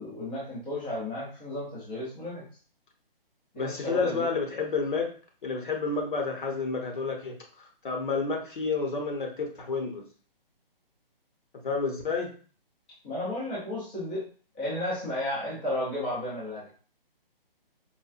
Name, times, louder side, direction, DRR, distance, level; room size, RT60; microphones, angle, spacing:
voice 1, 0.0-2.4 3.5-4.3 13.0-14.2 14.5-16.7, left 1 dB, 10° left, -9 dB, 0.5 m, -33 dB
voice 2, 3.5-5.1 5.4-10.0 11.6-12.3, left 4 dB, 55° left, 2 dB, 1.0 m, -30 dB
4.2 x 2.2 x 2.4 m, 0.41 s
hypercardioid pair, 155°, 29 cm